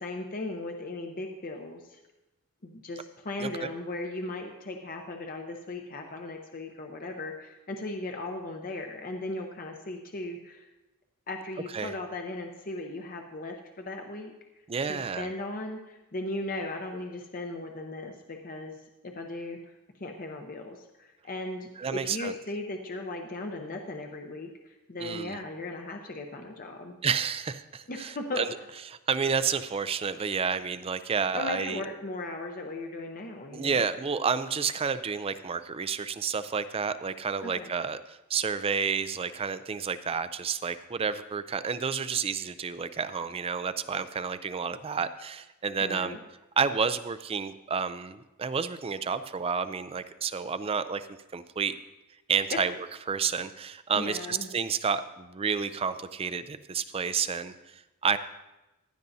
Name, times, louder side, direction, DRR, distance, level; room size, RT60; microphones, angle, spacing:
voice 1, 0.0-2.0 2.6-10.7 11.3-14.3 14.9-18.8 19.0-19.6 20.0-27.0 27.9-28.4 31.3-33.8 37.4-37.7 45.8-46.2 52.5-52.6 53.9-54.5, left 2 dB, 40° left, 3 dB, 0.7 m, -37 dB
voice 2, 14.7-15.3 21.8-22.3 25.0-25.4 27.0-28.5 28.9-31.8 33.5-46.2 46.6-51.7 52.3-58.2, right 6 dB, 25° right, 13 dB, 0.4 m, -30 dB
15.5 x 10.5 x 2.7 m, 1.0 s
head